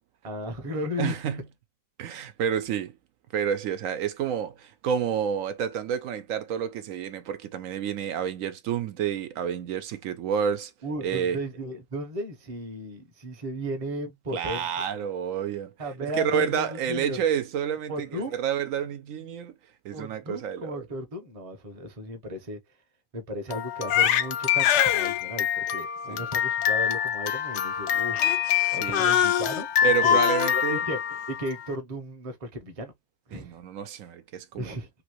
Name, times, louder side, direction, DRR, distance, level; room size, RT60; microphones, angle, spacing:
voice 1, 0.2-1.1 10.8-14.7 15.8-17.2 17.9-18.3 19.9-22.6 23.1-28.2 28.7-29.7 30.0-30.2 30.5-31.0 31.3-32.9 33.3-33.5 34.5-34.9, equal, 35° right, 0.7 m, -35 dB
voice 2, 1.0-1.4 2.0-2.9 3.3-10.7 11.0-11.4 14.3-15.7 16.0-19.5 19.8-20.8 26.1-26.2 28.7-29.1 29.8-30.8 33.3-34.7, right 8 dB, 80° right, 1.0 m, -29 dB
Crying sobbing, 23.5-31.7, left 10 dB, 65° left, 0.8 m, -24 dB
3.1 x 2.6 x 2.9 m
omnidirectional pair, 1.4 m